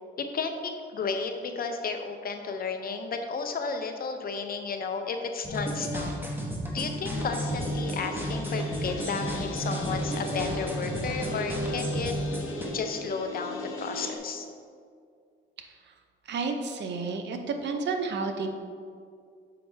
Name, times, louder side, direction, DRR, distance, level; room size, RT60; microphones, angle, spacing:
voice 1, 0.2-6.1 6.7-12.1 12.7-14.5, left 5 dB, 50° left, 6 dB, 0.7 m, -33 dB
sound 1, 5.4-12.7, right 1 dB, 10° right, 1.1 m, -32 dB
sound 2, 7.1-14.2, left 1 dB, 90° left, 0.9 m, -37 dB
voice 2, 15.6-15.9 16.3-18.5, right 4 dB, 60° right, 5 dB, 0.7 m, -31 dB
6.8 x 5.3 x 3.3 m, 2.2 s
cardioid pair, 90°, 20 cm